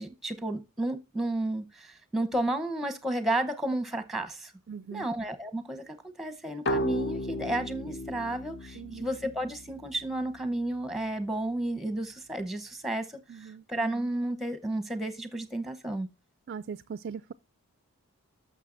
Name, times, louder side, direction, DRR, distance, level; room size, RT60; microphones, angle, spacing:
voice 1, 0.0-4.5 4.9-16.1, right 1 dB, ahead, 0.8 m, -32 dB
voice 2, 4.7-5.1 8.7-9.2 13.3-13.6 16.5-17.3, right 6 dB, 45° right, 0.3 m, -40 dB
sound 1, 6.7-10.1, equal, 50° left, 0.7 m, -34 dB
11.5 x 6.5 x 2.5 m
head